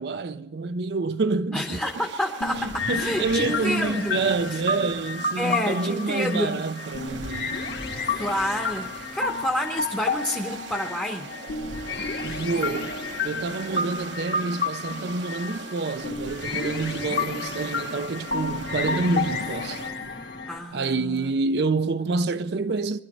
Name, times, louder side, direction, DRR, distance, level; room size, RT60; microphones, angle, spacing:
voice 1, 0.0-1.8 2.6-7.6 12.2-12.9 13.2-19.8 20.7-23.0, right 3 dB, 60° right, 0.5 m, -27 dB
voice 2, 1.5-4.2 4.5-4.6 5.4-6.6 8.1-11.3 20.5-21.3, equal, 5° left, 0.9 m, -29 dB
sound 1, 1.7-19.9, right 4 dB, 80° right, 1.1 m, -41 dB
sound 2, 2.4-20.6, left 4 dB, 60° left, 1.7 m, -31 dB
23.0 x 11.5 x 5.3 m
head